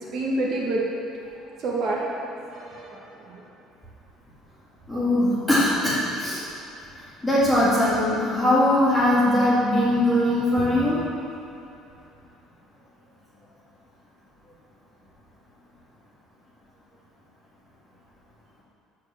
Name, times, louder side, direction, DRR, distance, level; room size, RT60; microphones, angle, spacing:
voice 1, 0.1-0.8 1.3-3.5, right 2 dB, 45° right, -3 dB, 1.5 m, -29 dB
voice 2, 4.9-6.4 7.2-11.0, left 1 dB, 5° left, -9 dB, 2.0 m, -21 dB
13.0 x 4.8 x 7.5 m, 2.8 s
cardioid pair, 145°, 0 cm